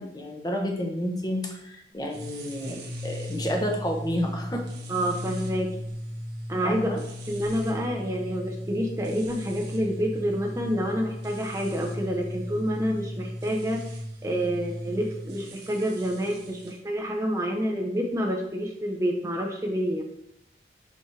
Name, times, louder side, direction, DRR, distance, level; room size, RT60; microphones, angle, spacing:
voice 1, 0.0-4.6 6.6-7.0, equal, 20° left, 2 dB, 0.8 m, -30 dB
sound 1, 2.1-16.8, equal, 80° right, 1.4 m, -36 dB
voice 2, 4.9-6.0 6.5-6.9 7.3-13.8 14.2-20.0, equal, 15° right, 1 dB, 0.6 m, -28 dB
6.1 x 5.6 x 3.2 m, 0.80 s
head